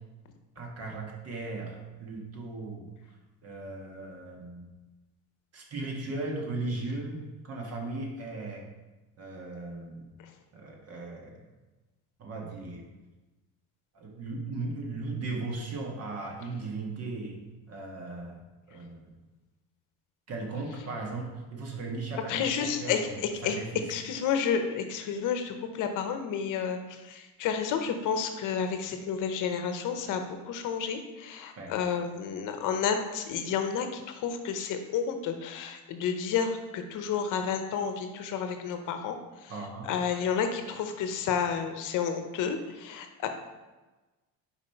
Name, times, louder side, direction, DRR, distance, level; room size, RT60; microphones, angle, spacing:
voice 1, 0.5-2.9 3.4-4.7 5.5-8.7 9.2-10.1 10.5-11.4 12.2-12.8 13.9-17.4 17.7-18.4 18.7-19.1 20.3-23.8 31.6-31.7 39.5-39.9, right 3 dB, 45° right, 0 dB, 1.4 m, -37 dB
voice 2, 22.3-23.6 23.9-43.3, left 7 dB, 60° left, 7 dB, 0.8 m, -31 dB
5.2 x 4.9 x 4.4 m, 1.2 s
cardioid pair, 110°, 34 cm